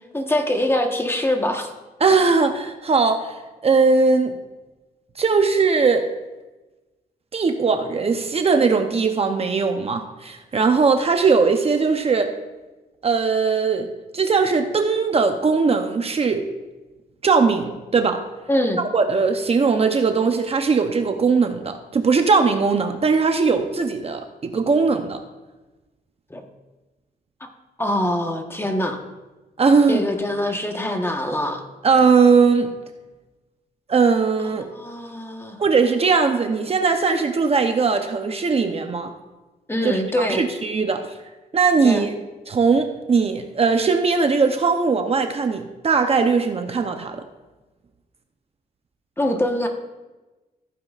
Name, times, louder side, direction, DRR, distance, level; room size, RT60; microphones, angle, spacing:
voice 1, 0.1-1.7 18.5-18.8 26.3-26.4 27.4-27.5 27.8-29.0 29.9-31.6 34.7-35.6 39.7-40.4 41.8-42.1 49.2-49.7, left 1 dB, 15° left, 4 dB, 1.3 m, -23 dB
voice 2, 2.0-3.3 3.6-4.3 5.2-6.1 7.3-12.3 13.0-13.9 14.1-16.5 17.2-18.2 18.9-25.2 29.6-30.0 31.8-32.7 33.9-34.7 35.6-39.1 39.8-41.1 41.5-42.1 42.5-47.2, right 4 dB, 40° right, 6 dB, 0.8 m, -19 dB
14.5 x 9.4 x 2.5 m, 1.1 s
cardioid pair, 100°, 16 cm